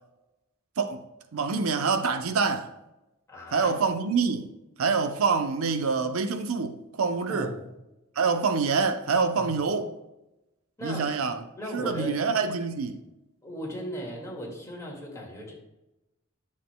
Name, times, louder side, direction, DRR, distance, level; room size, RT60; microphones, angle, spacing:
voice 1, 1.3-2.7 3.5-4.5 4.8-7.5 8.2-9.9 10.8-11.4 11.7-13.0, right 4 dB, 80° right, 0.7 m, -26 dB
voice 2, 3.3-3.7 7.3-7.7 9.4-9.6 10.8-11.0 11.6-12.2 13.4-15.5, equal, 15° left, 2.0 m, -36 dB
10.0 x 7.4 x 2.2 m
head